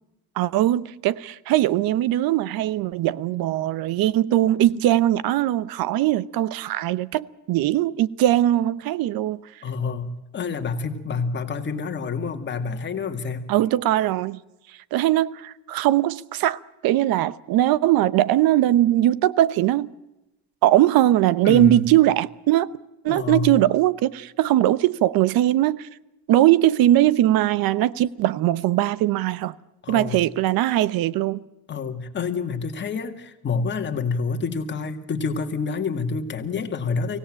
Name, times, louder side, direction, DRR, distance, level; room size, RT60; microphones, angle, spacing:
voice 1, 0.4-9.4 13.5-14.4 14.9-19.9 20.6-22.7 23.0-25.9 26.3-29.5 29.9-31.4, right 13 dB, 60° right, 0.9 m, -20 dB
voice 2, 9.6-13.5 21.4-21.8 23.1-23.5 29.8-30.2 31.7-37.2, left 5 dB, 25° left, 2.0 m, -28 dB
24.5 x 17.0 x 8.8 m
cardioid pair, 160°, 40 cm